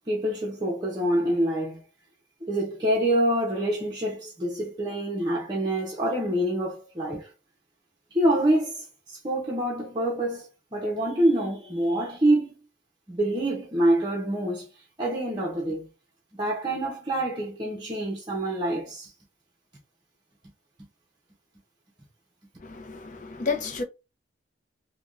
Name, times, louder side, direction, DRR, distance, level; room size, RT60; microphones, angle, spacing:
voice 1, 0.1-1.8 2.5-7.3 8.1-12.6 13.1-14.7 15.0-15.9 16.3-19.1, right 1 dB, 25° right, 0.7 m, -26 dB
voice 2, 22.6-23.8, left 4 dB, 40° left, 0.6 m, -31 dB
3.4 x 2.2 x 2.4 m
head